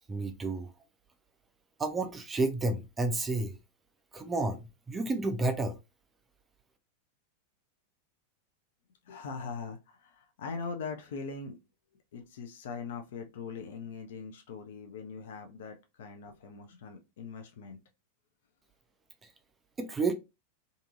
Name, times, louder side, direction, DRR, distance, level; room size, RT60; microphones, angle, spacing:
voice 1, 0.1-0.7 1.8-3.5 4.1-4.6 4.9-5.8 19.8-20.1, right 3 dB, 15° right, 0.4 m, -30 dB
voice 2, 9.0-11.6 12.1-17.8, left 5 dB, 60° left, 0.5 m, -41 dB
2.6 x 2.6 x 2.4 m
figure-of-eight pair, 90°, 0 cm